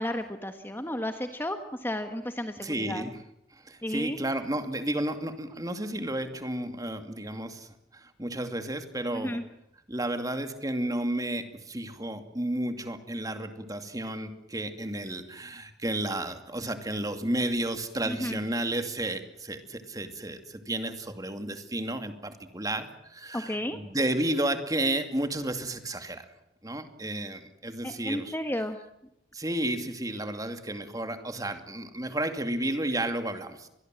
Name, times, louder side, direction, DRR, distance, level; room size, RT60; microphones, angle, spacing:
voice 1, 0.0-3.0 3.8-4.2 9.1-9.4 18.1-18.4 23.3-23.8 27.8-28.8, left 1 dB, 10° left, 7 dB, 1.4 m, -33 dB
voice 2, 2.6-3.2 3.5-9.4 9.9-26.3 26.6-28.6 29.3-33.7, right 1 dB, 20° right, 8 dB, 2.5 m, -32 dB
25.5 x 21.5 x 7.7 m, 0.81 s
head